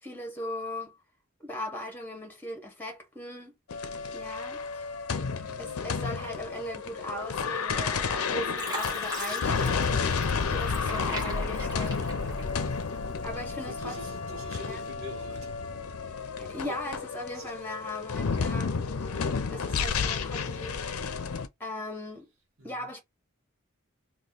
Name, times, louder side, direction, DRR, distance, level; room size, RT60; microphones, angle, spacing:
voice 1, 0.0-1.0 1.4-3.6 4.1-4.9 5.6-12.1 13.2-14.0 14.6-14.8 16.4-20.8 21.6-22.3 22.6-23.0, left 1 dB, 10° left, 1.2 m, -39 dB
sound 1, 3.7-21.5, left 5 dB, 80° left, 0.6 m, -31 dB
voice 2, 5.4-5.8 11.1-11.5 13.6-15.5 16.5-16.8 17.3-17.6 22.6-22.9, equal, 65° right, 1.2 m, -45 dB
Fill (with liquid), 7.8-8.2 8.6-13.0 13.4-14.2 14.7-14.9, right 1 dB, 20° right, 1.2 m, -41 dB
2.9 x 2.4 x 3.7 m
head